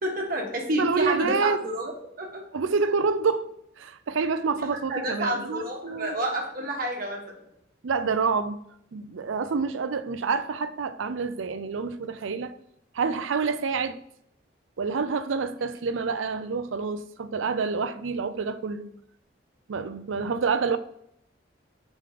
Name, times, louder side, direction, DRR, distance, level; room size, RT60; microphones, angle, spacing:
voice 1, 0.0-1.9 2.2-2.4 4.6-7.3, right 1 dB, 45° right, 1.4 m, -29 dB
voice 2, 0.8-1.6 2.5-6.2 7.8-8.6 8.9-12.5 12.9-14.0 14.8-18.9 19.7-20.8, right 5 dB, 80° right, 0.5 m, -27 dB
5.0 x 3.8 x 5.1 m
head